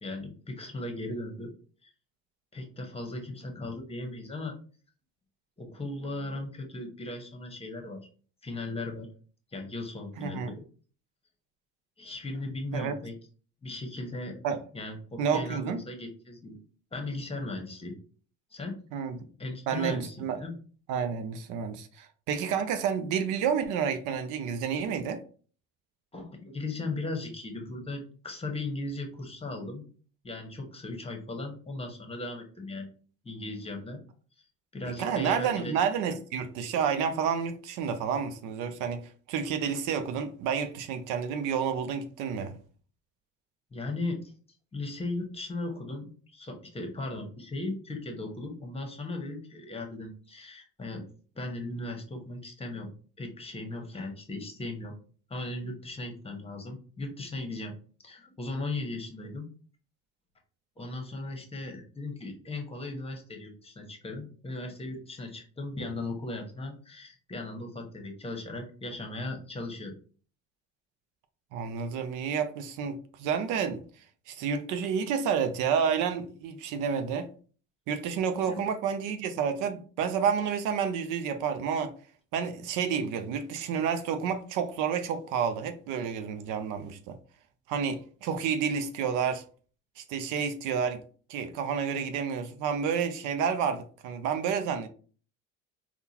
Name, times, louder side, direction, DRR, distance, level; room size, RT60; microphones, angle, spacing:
voice 1, 0.0-1.5 1.8-1.9 2.5-4.6 5.6-8.0 8.4-9.1 9.5-10.6 12.0-13.1 13.6-14.4 14.7-16.6 16.9-17.9 18.5-18.8 19.4-20.6 26.1-29.8 30.2-32.9 33.2-34.0 34.7-35.7 43.7-44.3 44.7-51.0 51.3-52.9 53.2-54.9 55.3-57.7 58.0-59.5 60.8-69.9 78.5-78.6, left 2 dB, 20° left, 1.1 m, -37 dB
voice 2, 10.2-10.5 12.7-12.9 14.4-14.6 15.2-15.8 18.9-19.3 19.7-20.4 20.9-25.2 35.0-39.0 39.3-42.5 71.5-73.8 74.3-77.3 77.9-81.9 82.3-87.2 87.7-89.4 90.0-91.0 91.3-94.9, right 7 dB, 70° right, 0.5 m, -30 dB
3.6 x 2.3 x 2.8 m
supercardioid pair, 80°, 32 cm